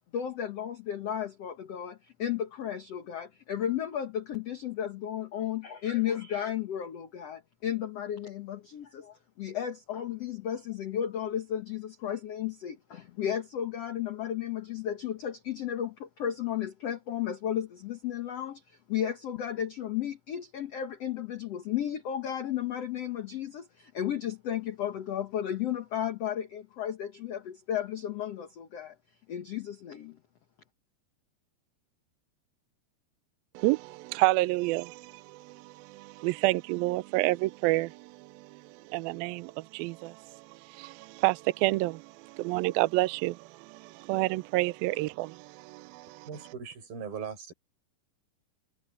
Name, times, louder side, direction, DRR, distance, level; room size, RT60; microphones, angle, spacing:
voice 1, 0.0-28.9 29.3-30.2, left 10 dB, 70° left, 1.5 m, -34 dB
voice 2, 33.6-38.6 38.9-40.5 40.7-46.3, right 20 dB, 80° right, 2.2 m, -29 dB
voice 3, 46.2-47.5, right 7 dB, 60° right, 7.4 m, -39 dB
omnidirectional pair, 4.8 m